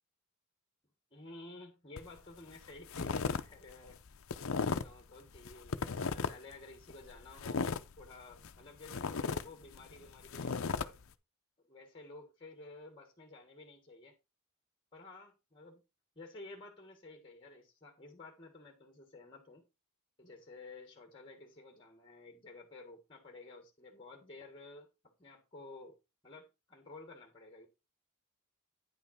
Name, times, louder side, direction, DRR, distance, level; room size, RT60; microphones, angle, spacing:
voice 1, 1.1-4.0 4.5-11.0 11.6-14.1 14.9-15.8 16.2-19.6 20.2-24.9 25.2-26.0 26.2-27.7, left 2 dB, 25° left, 1.6 m, -53 dB
sound 1, 2.0-2.2 2.5-3.4 3.7-5.0 5.4-6.5 6.9-8.6 8.8-10.9, left 4 dB, 65° left, 0.6 m, -35 dB
9.7 x 5.5 x 4.2 m
head